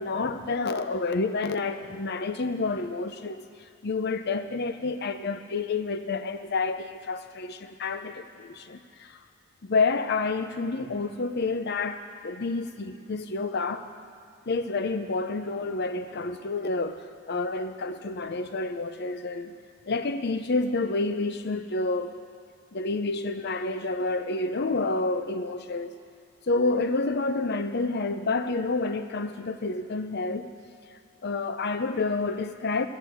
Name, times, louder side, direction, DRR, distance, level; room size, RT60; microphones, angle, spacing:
voice 1, 0.0-3.4 3.8-9.2 9.6-13.9 14.5-19.5 19.9-22.1 22.7-25.9 26.5-30.5 31.2-32.9, left 3 dB, 50° left, 10 dB, 0.6 m, -29 dB
14.5 x 8.3 x 7.7 m, 2.4 s
head